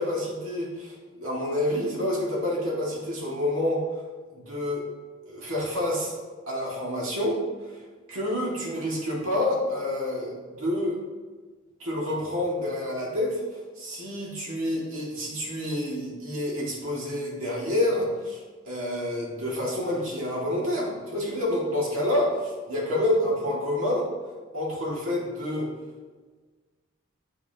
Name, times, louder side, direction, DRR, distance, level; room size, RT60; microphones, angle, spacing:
voice 1, 0.0-3.8 4.3-4.9 5.3-6.1 6.5-7.4 7.7-7.8 8.1-11.0 11.8-24.1 24.5-25.7, left 1 dB, 85° right, -4 dB, 2.0 m, -28 dB
7.9 x 5.7 x 2.8 m, 1.4 s
head